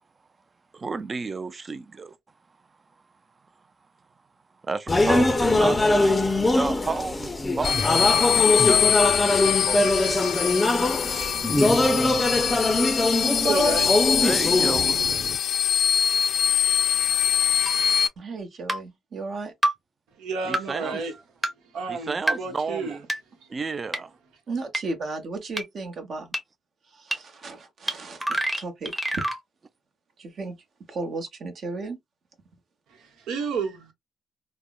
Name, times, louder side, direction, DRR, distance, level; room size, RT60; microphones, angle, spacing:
voice 1, 0.7-2.2 4.6-10.0 10.3-10.7 14.2-15.1 20.4-21.0 21.9-23.0 23.5-24.1, right 4 dB, 35° right, 0.4 m, -32 dB
sound 1, 4.9-15.4, left 2 dB, 20° left, 0.5 m, -22 dB
sound 2, 7.6-18.1, left 8 dB, 70° left, 0.4 m, -23 dB
voice 2, 13.2-14.1 20.2-21.1 21.7-23.0 23.4-23.5 32.9-33.9, right 4 dB, 85° right, 1.0 m, -31 dB
sound 3, 17.7-17.8 18.7-18.8 19.6-19.7 20.5-20.6 21.4-21.5 22.3-22.4 23.1-23.2 23.9-24.0 24.7-24.8 25.6-25.7 26.3-26.4 27.1-27.2 27.9-28.0 28.2-29.4, right 1 dB, 10° right, 0.9 m, -25 dB
voice 3, 18.2-19.5 24.5-26.3 26.9-29.2 30.2-30.6 30.9-32.0, right 3 dB, 55° right, 1.0 m, -35 dB
3.4 x 2.1 x 2.3 m
cardioid pair, 90°, 0 cm